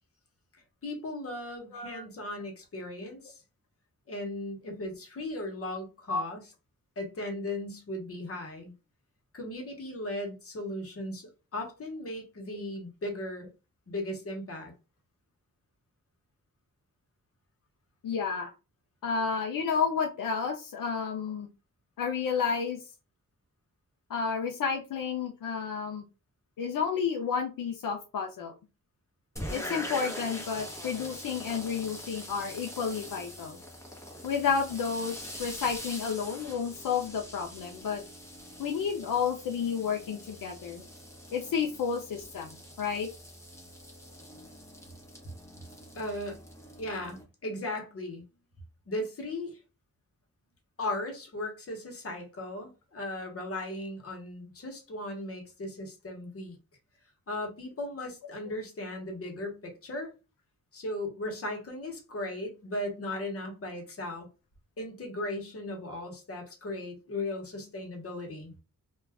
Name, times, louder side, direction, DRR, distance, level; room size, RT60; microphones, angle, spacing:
voice 1, 0.8-3.4 4.1-6.4 7.0-8.7 9.3-13.5 13.9-14.7 46.0-46.4 46.8-48.2 48.9-49.6 50.8-56.6 57.3-60.1 60.7-64.3 64.8-68.5, left 1 dB, 45° left, 1.0 m, -37 dB
voice 2, 1.7-2.0 6.1-6.2 18.0-18.5 19.0-21.5 22.0-22.8 24.1-26.0 26.6-28.5 29.5-33.6 34.2-38.0 38.6-40.8 41.3-42.5 42.8-43.1, left 6 dB, 80° left, 0.6 m, -31 dB
sound 1, 29.4-47.2, equal, 10° left, 0.9 m, -43 dB
2.4 x 2.3 x 3.4 m
wide cardioid pair, 140°, 33 cm